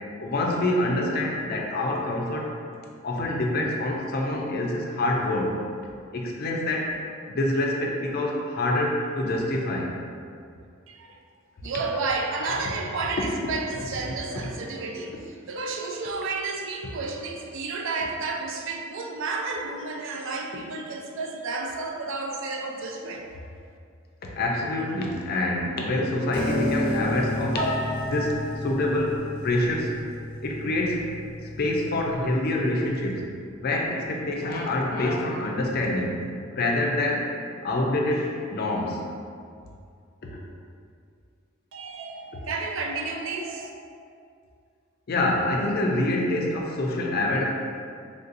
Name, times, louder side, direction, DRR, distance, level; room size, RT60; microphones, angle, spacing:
voice 1, 0.0-2.6 3.0-5.6 6.1-6.9 7.3-9.9 15.6-15.7 24.4-27.7 28.0-30.0 30.4-31.0 31.6-33.3 33.6-37.3 37.6-39.0 40.2-40.4 45.1-47.4, left 1 dB, 50° left, -1 dB, 0.4 m, -26 dB
voice 2, 10.9-11.2 11.6-15.2 15.5-23.3 41.7-43.7, right 3 dB, 65° right, 2 dB, 0.3 m, -31 dB
Piano, 26.3-32.5, equal, 25° left, 0.8 m, -31 dB
3.4 x 2.6 x 2.5 m, 2.3 s
head